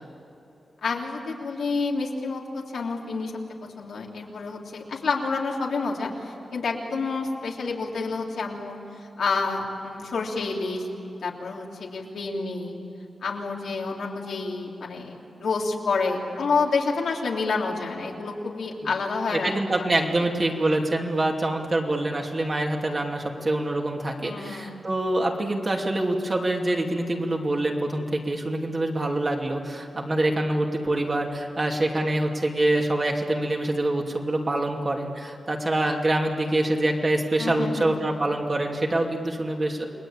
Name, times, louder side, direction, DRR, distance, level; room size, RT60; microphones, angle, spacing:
voice 1, 0.8-3.3 3.8-10.9 11.2-12.8 13.2-19.9 24.2-24.8 30.2-30.3 37.4-37.9, left 4 dB, 80° left, -1 dB, 3.4 m, -29 dB
voice 2, 19.3-39.9, right 1 dB, 30° right, 1 dB, 2.7 m, -25 dB
29.0 x 20.5 x 8.9 m, 2.9 s
wide cardioid pair, 120°, 0 cm